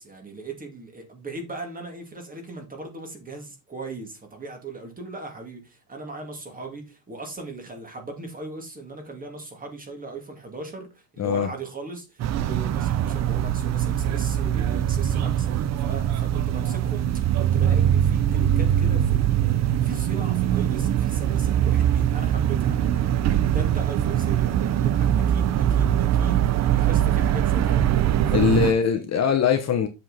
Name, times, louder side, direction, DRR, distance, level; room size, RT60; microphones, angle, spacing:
voice 1, 0.0-27.9 28.3-28.7, right 3 dB, 20° right, 2.5 m, -38 dB
sound 1, 12.2-28.7, right 10 dB, 35° right, 0.5 m, -22 dB
voice 2, 28.3-29.9, left 7 dB, 35° left, 1.1 m, -21 dB
7.6 x 5.8 x 4.2 m
cardioid pair, 155°, 46 cm